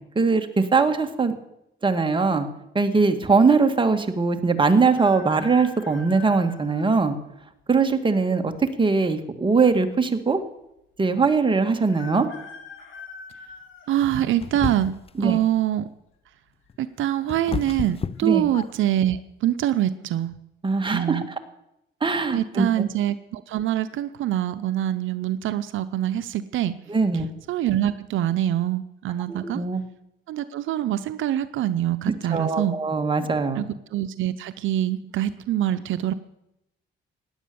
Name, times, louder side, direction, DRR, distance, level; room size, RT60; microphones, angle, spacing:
voice 1, 0.2-1.3 1.8-2.5 2.7-7.2 7.7-10.4 11.0-12.3 15.2-15.4 18.2-18.5 20.6-21.2 22.0-22.7 26.9-27.3 29.3-29.8 32.1-33.6, right 4 dB, 25° right, 6 dB, 1.9 m, -21 dB
sound 1, 4.9-6.9 7.6-7.7 8.8-9.4 9.7-9.8 10.0-10.1 11.9-14.5 15.1-15.5 16.6-17.0 17.2-17.3 17.8-18.2 18.7-18.9, left 4 dB, 80° left, 2.8 m, -44 dB
voice 2, 13.9-14.9 15.2-15.9 16.8-20.3 20.9-21.3 22.3-26.8 27.5-29.6 30.3-32.8 33.6-36.1, right 12 dB, 80° right, 12 dB, 0.7 m, -24 dB
sound 2, 14.4-15.2 16.7-19.0, left 6 dB, 30° left, 0.6 m, -31 dB
16.5 x 10.5 x 7.0 m, 0.85 s
cardioid pair, 90°, 20 cm